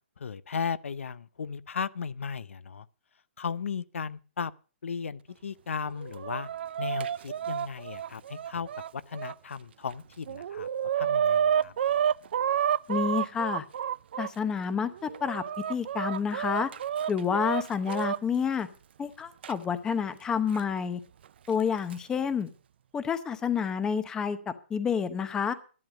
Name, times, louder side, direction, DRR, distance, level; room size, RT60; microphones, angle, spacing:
voice 1, 0.2-2.9 3.4-4.5 4.8-6.5 6.8-10.7 10.9-11.7, left 6 dB, 85° left, 0.7 m, -36 dB
Chicken rooster, 5.9-9.3 9.9-10.0 10.3-14.3 14.9-18.2 19.4-19.5 20.5-20.6 21.6-21.9, right 9 dB, 55° right, 0.5 m, -30 dB
voice 2, 12.9-13.6 14.2-15.4 15.7-16.7 17.1-18.7 19.0-21.0 21.5-22.5 22.9-25.5, left 6 dB, 10° left, 0.7 m, -29 dB
12.0 x 11.0 x 5.1 m
hypercardioid pair, 160°, 7 cm